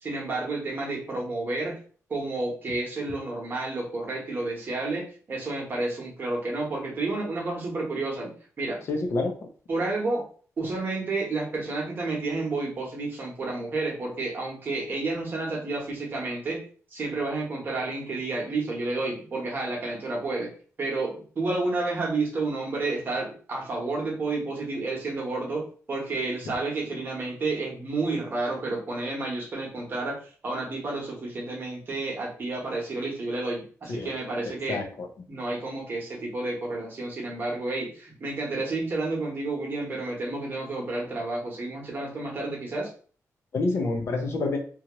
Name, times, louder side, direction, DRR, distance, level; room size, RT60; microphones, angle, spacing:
voice 1, 0.0-1.8 2.1-5.0 5.3-8.3 8.6-8.8 9.7-10.3 10.6-16.6 16.9-20.5 20.8-34.8 35.3-42.9, right 3 dB, 35° right, -2 dB, 1.0 m, -30 dB
voice 2, 8.9-9.3 33.9-34.1 34.7-35.1 43.5-44.6, left 3 dB, 50° left, 4 dB, 0.6 m, -27 dB
2.8 x 2.4 x 2.9 m, 0.42 s
wide cardioid pair, 170°, 6 cm